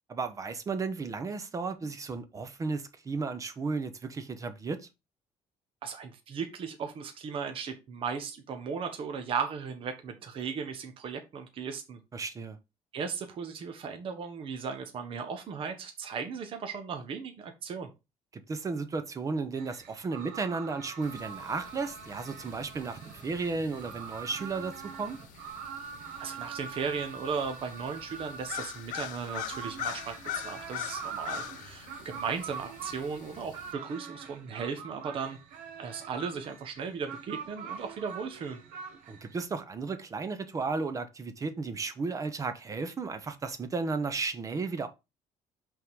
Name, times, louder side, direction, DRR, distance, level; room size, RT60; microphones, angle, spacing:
voice 1, 0.1-4.9 12.1-12.6 18.5-25.2 39.1-44.9, right 4 dB, 25° right, 0.8 m, -34 dB
voice 2, 5.8-12.0 12.9-17.9 26.2-30.1 30.4-35.4 35.8-38.6, right 6 dB, 45° right, 1.0 m, -36 dB
sound 1, 19.6-39.4, right 6 dB, 90° right, 1.2 m, -44 dB
sound 2, 21.0-33.7, left 13 dB, 85° left, 0.7 m, -44 dB
5.6 x 3.7 x 4.7 m
cardioid pair, 150°, 13 cm